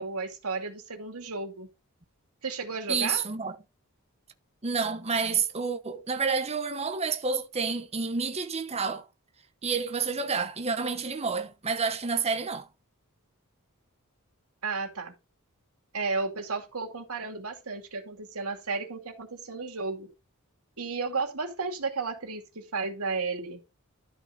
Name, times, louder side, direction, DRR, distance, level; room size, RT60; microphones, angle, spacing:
voice 1, 0.0-1.7 2.4-3.2 14.6-15.1 15.9-20.1 20.8-23.6, right 4 dB, 85° right, 2.6 m, -33 dB
voice 2, 2.9-3.6 4.6-9.1 9.6-12.7, right 5 dB, 30° right, 1.0 m, -29 dB
12.5 x 5.1 x 3.9 m
head